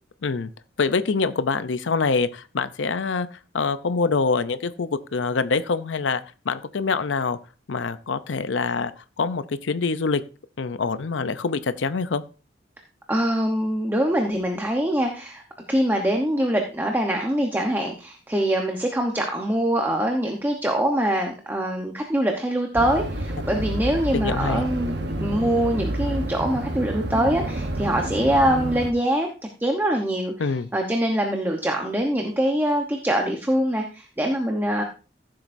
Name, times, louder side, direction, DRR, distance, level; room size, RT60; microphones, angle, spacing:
voice 1, 0.8-7.4 7.7-8.9 9.2-10.2 10.6-12.2 23.5-23.6 24.1-24.6 30.4-30.7, left 4 dB, 90° left, 13 dB, 0.6 m, -25 dB
voice 2, 13.1-15.4 15.7-29.3 29.6-34.8, right 1 dB, 10° right, 2 dB, 1.0 m, -24 dB
sound 1, 22.7-28.9, right 1 dB, 65° right, 1.0 m, -29 dB
14.5 x 7.6 x 2.6 m, 0.35 s
head